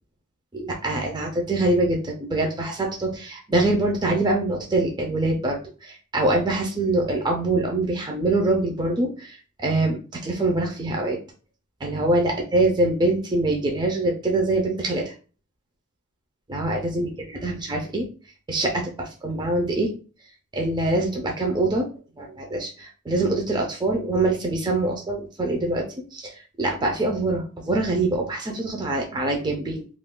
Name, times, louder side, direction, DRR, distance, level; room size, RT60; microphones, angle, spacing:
voice 1, 0.5-11.2 11.8-15.1 16.5-18.1 18.5-19.9 20.5-21.9 22.2-25.8 26.1-29.9, right 2 dB, 20° right, 1 dB, 0.4 m, -24 dB
2.4 x 2.2 x 3.6 m, 0.37 s
head